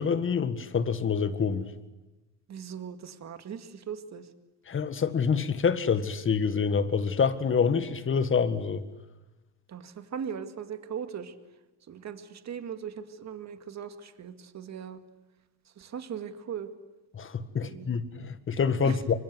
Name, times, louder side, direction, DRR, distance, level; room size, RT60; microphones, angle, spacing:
voice 1, 0.0-1.7 4.7-8.8 17.1-19.1, left 6 dB, 25° left, 1.8 m, -26 dB
voice 2, 2.5-4.3 9.7-11.3 11.9-15.0 15.8-16.7 17.6-17.9 18.8-19.0, right 8 dB, 35° right, 2.2 m, -39 dB
26.0 x 24.5 x 8.1 m
cardioid pair, 120°, 44 cm